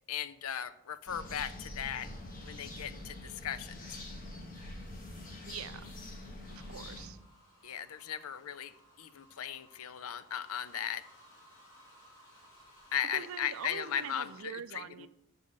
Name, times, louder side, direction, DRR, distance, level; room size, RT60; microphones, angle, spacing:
voice 1, 0.1-2.1 2.4-3.8 7.6-11.0 12.9-15.1, left 9 dB, 75° left, 13 dB, 0.5 m, -37 dB
sound 1, 1.1-7.1, left 1 dB, 40° left, 1.4 m, -45 dB
voice 2, 5.5-5.9 6.5-7.2 13.1-15.1, right 7 dB, 70° right, 14 dB, 0.4 m, -44 dB
sound 2, 6.4-14.4, equal, 55° left, 3.6 m, -59 dB
6.3 x 5.5 x 6.5 m, 0.84 s
head